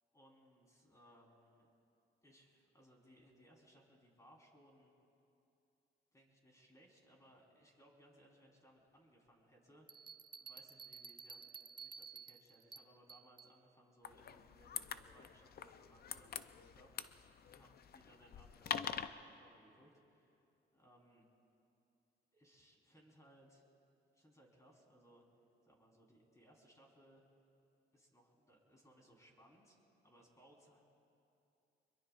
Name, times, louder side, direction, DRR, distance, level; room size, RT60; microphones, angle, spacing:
voice 1, 0.1-1.7 2.2-4.9 6.1-10.1 10.4-11.5 11.8-21.3 22.3-23.6 24.1-25.3 25.7-27.2 27.9-30.8, equal, 15° left, -1 dB, 3.9 m, -66 dB
Bell, 9.9-13.6, right 6 dB, 25° right, 0.5 m, -53 dB
sound 1, 14.0-19.1, left 8 dB, 50° left, 0.6 m, -45 dB
25.0 x 22.5 x 2.5 m, 2.7 s
cardioid pair, 90°, 20 cm